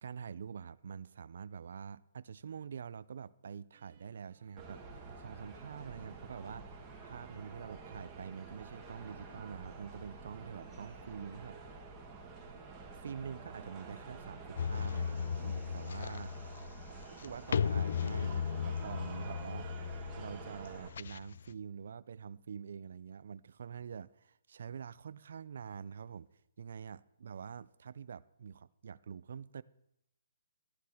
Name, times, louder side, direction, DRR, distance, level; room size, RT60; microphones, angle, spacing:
voice 1, 0.0-4.8 5.2-11.6 13.0-16.4 17.1-26.3 26.6-29.6, right 7 dB, 65° right, 0.4 m, -46 dB
sound 1, 3.7-11.6, right 9 dB, 45° right, 2.2 m, -65 dB
sound 2, 4.6-20.9, right 4 dB, 15° right, 1.9 m, -49 dB
Percussion on an Old Empty Oil Drum, 14.6-21.5, left 7 dB, 65° left, 0.3 m, -36 dB
13.0 x 11.5 x 4.4 m
hypercardioid pair, 160°, 0 cm